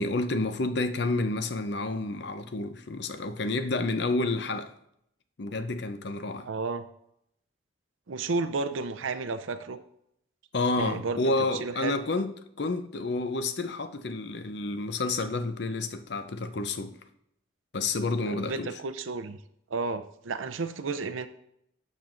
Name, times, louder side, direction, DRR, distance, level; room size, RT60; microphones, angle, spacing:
voice 1, 0.0-4.7 5.4-6.5 10.5-12.3 12.6-16.9 17.7-18.7, left 2 dB, 55° left, 0.6 m, -29 dB
voice 2, 6.5-6.9 8.1-9.8 10.8-12.0 18.3-19.4 19.7-21.3, right 4 dB, 75° right, 0.6 m, -32 dB
12.0 x 6.9 x 2.5 m
head